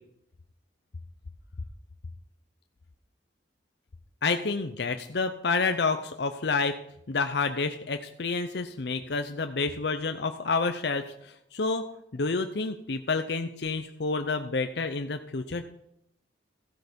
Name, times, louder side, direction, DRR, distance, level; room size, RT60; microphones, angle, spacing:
voice 1, 4.2-6.8 7.1-11.8 12.1-15.7, left 4 dB, 65° left, 7 dB, 0.7 m, -29 dB
14.5 x 7.8 x 5.3 m, 0.75 s
head